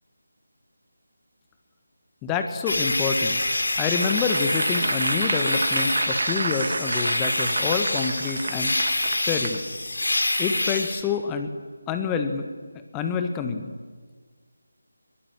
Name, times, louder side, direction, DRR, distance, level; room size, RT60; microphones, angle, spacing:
voice 1, 2.2-3.4 3.8-9.6 10.4-11.5 11.9-12.5 12.9-13.7, left 6 dB, 10° left, 7 dB, 1.4 m, -27 dB
sound 1, 2.7-11.0, left 2 dB, 65° left, 3.3 m, -26 dB
Applause / Crowd, 3.9-9.6 10.1-10.3, right 3 dB, 50° right, 1.4 m, -30 dB
23.0 x 22.0 x 7.4 m, 1.5 s
figure-of-eight pair, 160°, 0 cm